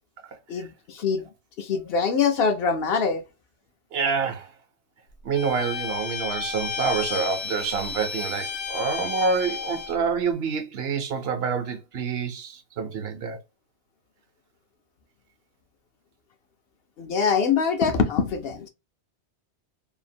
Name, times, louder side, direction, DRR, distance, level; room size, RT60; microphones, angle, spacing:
voice 1, 0.5-1.3 1.6-3.2 17.0-18.7, left 5 dB, 65° left, 0.8 m, -24 dB
voice 2, 3.9-4.5 5.2-13.4, right 5 dB, 65° right, 0.8 m, -27 dB
Bowed string instrument, 5.3-10.0, left 6 dB, 90° left, 1.0 m, -32 dB
2.8 x 2.4 x 2.6 m
omnidirectional pair, 1.2 m